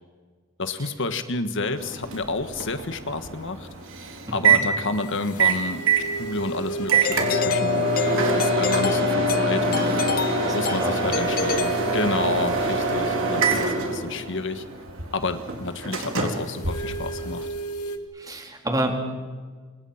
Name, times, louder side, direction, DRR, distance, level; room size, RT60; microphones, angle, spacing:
voice 1, 0.6-3.7 4.3-5.8 6.2-10.0 10.5-14.6 15.1-17.5, left 3 dB, 55° left, 9 dB, 1.5 m, -30 dB
Microwave oven, 1.8-17.5, right 3 dB, 60° right, 4.1 m, -25 dB
sound 1, 5.0-9.2 9.8-13.5 16.0-18.0, right 3 dB, 80° left, 2.3 m, -35 dB
Doorbell, 7.0-12.5, left 6 dB, 40° left, 0.7 m, -30 dB
voice 2, 10.4-11.2 18.1-19.0, right 1 dB, 15° right, 2 dB, 3.8 m, -29 dB
29.0 x 27.0 x 5.8 m, 1.5 s
head